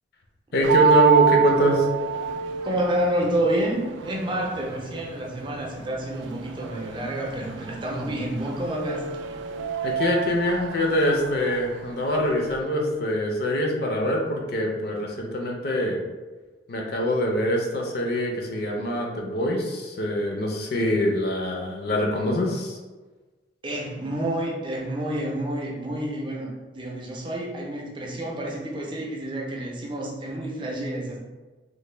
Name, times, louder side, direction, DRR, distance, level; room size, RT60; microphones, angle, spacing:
voice 1, 0.5-1.9 9.8-16.0 16.7-22.8, equal, 60° left, 0 dB, 0.5 m, -24 dB
sound 1, 0.6-12.6, right 8 dB, 90° right, 0.3 m, -28 dB
voice 2, 2.6-9.0 23.6-31.2, right 1 dB, 25° right, -2 dB, 0.5 m, -29 dB
3.1 x 2.2 x 3.2 m, 1.3 s
head